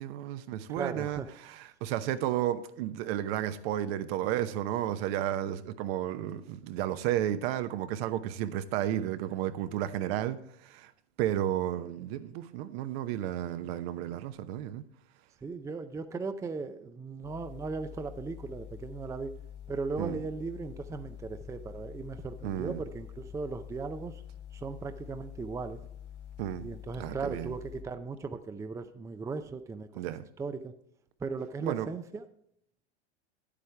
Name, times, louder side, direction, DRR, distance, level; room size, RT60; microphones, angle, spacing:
voice 1, 0.0-10.9 11.2-14.8 20.0-20.2 22.4-22.8 26.4-26.7 27.0-27.5 29.9-30.3 31.6-31.9, right 12 dB, 60° right, 11 dB, 0.9 m, -32 dB
voice 2, 0.8-1.3 15.4-19.3 19.7-24.2 24.5-25.8 26.6-30.0 30.4-30.7 31.2-32.2, right 4 dB, 10° right, 9 dB, 0.5 m, -37 dB
sound 1, 17.2-27.8, left 10 dB, 85° left, 2.5 m, -46 dB
9.5 x 8.4 x 3.4 m, 0.75 s
hypercardioid pair, 110°, 34 cm